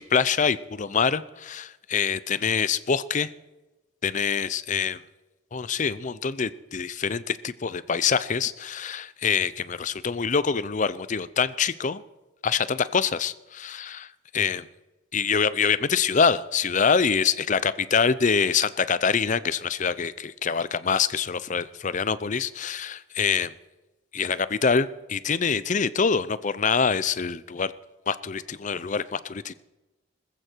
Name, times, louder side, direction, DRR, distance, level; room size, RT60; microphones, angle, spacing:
voice 1, 0.0-3.3 4.0-5.0 5.5-12.0 12.4-14.1 14.3-14.6 15.1-23.5 24.1-27.7 28.1-29.5, left 6 dB, 40° left, 16 dB, 0.5 m, -25 dB
20.0 x 14.5 x 4.5 m, 1.1 s
head